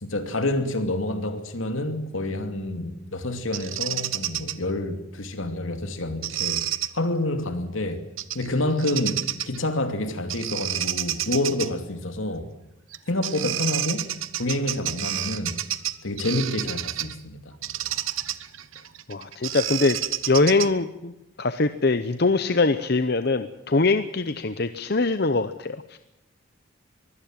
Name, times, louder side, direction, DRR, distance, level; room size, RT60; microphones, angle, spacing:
voice 1, 0.0-6.6 6.9-8.1 8.3-12.5 13.1-14.1 14.4-15.6 16.0-17.5, left 1 dB, 75° left, 2.7 m, -28 dB
Bird vocalization bird call bird song, 3.5-4.5 6.2-6.9 8.2-8.5 8.8-9.6 10.3-11.7 12.9-13.0 13.2-17.2 17.6-20.9, right 12 dB, 80° right, 1.0 m, -29 dB
voice 2, 19.1-20.0 20.3-21.1 21.4-26.0, left 3 dB, 50° left, 0.8 m, -23 dB
23.5 x 16.5 x 7.6 m
head